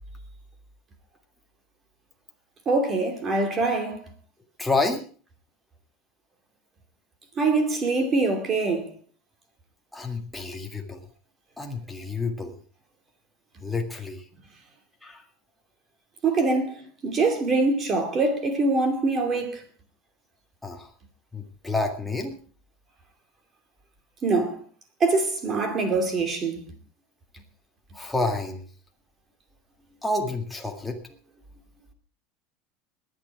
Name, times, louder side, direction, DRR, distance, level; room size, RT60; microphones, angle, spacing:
voice 1, 2.7-4.0 7.4-8.9 16.2-19.6 24.2-24.6 25.0-26.6, right 3 dB, 25° right, 2.6 m, -24 dB
voice 2, 4.6-5.0 9.9-11.0 11.6-12.6 13.6-14.2 15.0-15.2 20.6-20.9 21.3-22.3 27.9-28.6 30.0-31.0, left 3 dB, 5° left, 1.9 m, -29 dB
21.5 x 9.1 x 4.8 m
supercardioid pair, 155°, 0 cm